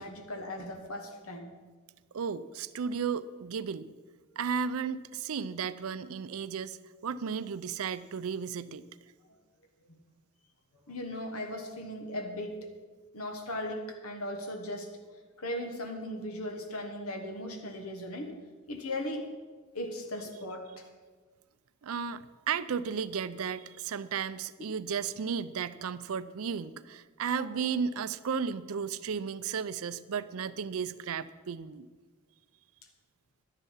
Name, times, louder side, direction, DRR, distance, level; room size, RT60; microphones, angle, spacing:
voice 1, 0.0-1.5 9.9-10.0 10.9-12.6 13.1-14.9 15.4-18.3 18.7-19.2 19.7-20.9 27.5-27.7, left 1 dB, 70° left, 4 dB, 1.3 m, -37 dB
voice 2, 2.1-3.9 4.4-6.8 7.0-8.8 21.8-31.9, right 6 dB, 70° right, 15 dB, 0.5 m, -34 dB
11.5 x 10.5 x 5.6 m, 1.4 s
head